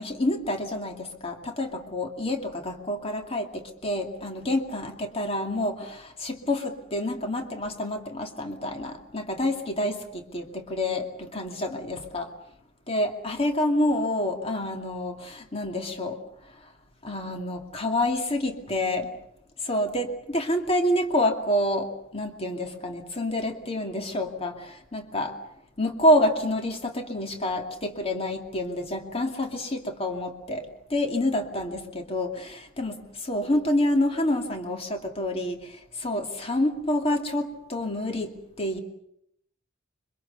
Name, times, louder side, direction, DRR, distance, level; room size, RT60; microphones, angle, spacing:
voice 1, 0.0-12.3 12.9-16.2 17.0-19.1 19.6-25.4 25.8-38.8, left 1 dB, 30° left, 4 dB, 2.6 m, -28 dB
26.0 x 24.5 x 6.8 m, 0.75 s
head